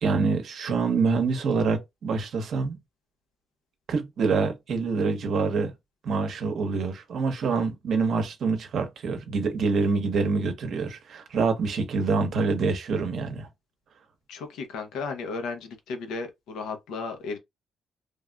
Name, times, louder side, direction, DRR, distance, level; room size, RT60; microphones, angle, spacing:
voice 1, 0.0-2.8 3.9-5.7 6.0-13.5, right 4 dB, 65° right, 0.8 m, -26 dB
voice 2, 14.3-17.4, left 4 dB, 85° left, 0.7 m, -34 dB
3.3 x 2.4 x 2.2 m
cardioid pair, 90°, 0 cm